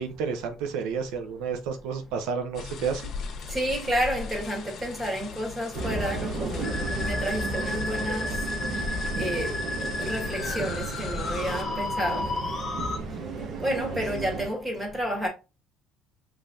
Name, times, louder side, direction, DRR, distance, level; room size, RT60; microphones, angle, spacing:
voice 1, 0.0-3.1, right 6 dB, 80° right, 0.7 m, -31 dB
sound 1, 2.5-11.6, left 5 dB, 45° left, 1.1 m, -40 dB
voice 2, 3.5-12.4 13.1-15.3, equal, 15° right, 1.8 m, -31 dB
sound 2, 5.7-14.5, right 2 dB, 45° right, 1.0 m, -33 dB
Musical instrument, 6.6-13.0, left 2 dB, 25° left, 1.0 m, -33 dB
5.5 x 3.2 x 2.6 m
cardioid pair, 135°, 0 cm